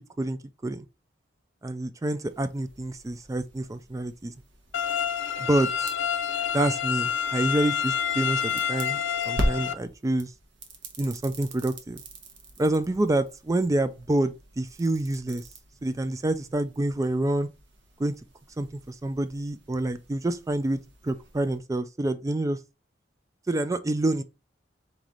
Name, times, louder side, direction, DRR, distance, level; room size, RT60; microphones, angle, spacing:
voice 1, 0.2-0.8 1.6-4.3 5.4-5.7 6.5-9.0 9.3-10.3 11.0-12.0 12.6-15.4 15.8-17.5 18.0-18.1 18.6-20.8 21.0-22.6 23.5-24.2, right 1 dB, 15° right, 0.3 m, -27 dB
sound 1, 2.2-21.6, equal, 65° right, 1.0 m, -40 dB
sound 2, 4.7-9.7, left 8 dB, 70° left, 0.4 m, -28 dB
4.1 x 3.2 x 3.8 m
head